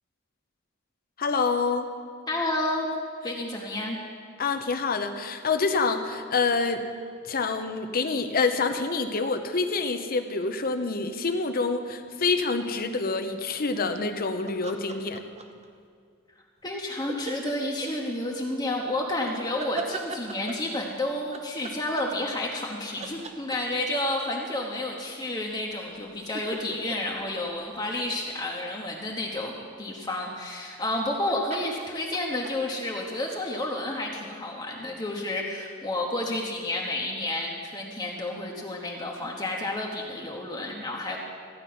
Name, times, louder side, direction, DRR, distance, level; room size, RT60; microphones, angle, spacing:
voice 1, 1.2-1.9 4.4-6.9 7.2-15.2, left 4 dB, 45° left, 7 dB, 0.8 m, -27 dB
voice 2, 2.3-2.9 3.2-4.0 16.6-41.2, left 1 dB, 20° left, -1 dB, 1.1 m, -30 dB
sound 1, 14.5-15.7 17.1-17.9 19.3-20.7 21.3-22.7 23.0-23.9 25.7-28.4 30.8-31.2 31.5-32.5, right 3 dB, 35° right, 0.9 m, -38 dB
14.5 x 5.3 x 9.4 m, 2.3 s
head